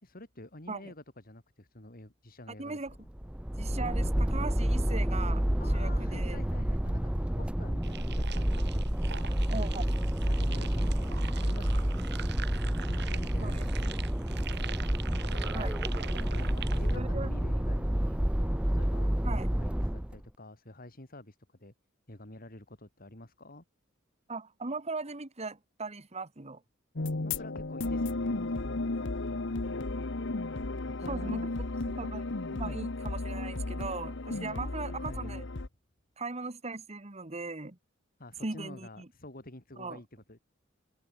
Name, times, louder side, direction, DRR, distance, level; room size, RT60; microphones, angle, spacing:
voice 1, 0.0-3.1 5.6-8.7 9.2-9.9 10.3-12.1 12.9-14.5 16.2-19.1 19.5-21.7 22.1-23.6 27.2-30.1 30.7-31.5 32.6-32.8 34.3-35.4 38.2-40.4, left 1 dB, 45° left, 3.8 m, -48 dB
voice 2, 2.6-2.9 3.6-5.4 5.7-6.4 9.5-9.8 13.4-13.6 15.5-15.8 17.0-17.3 19.2-19.5 24.3-26.6 31.1-31.4 31.9-32.2 32.5-35.4 36.2-37.8 38.4-39.1 39.8-40.0, right 3 dB, 35° right, 1.6 m, -38 dB
sound 1, 2.9-20.2, equal, 5° right, 0.5 m, -29 dB
sound 2, 7.8-17.0, right 9 dB, 60° right, 2.4 m, -44 dB
sound 3, 27.0-35.7, left 2 dB, 65° left, 1.2 m, -34 dB
head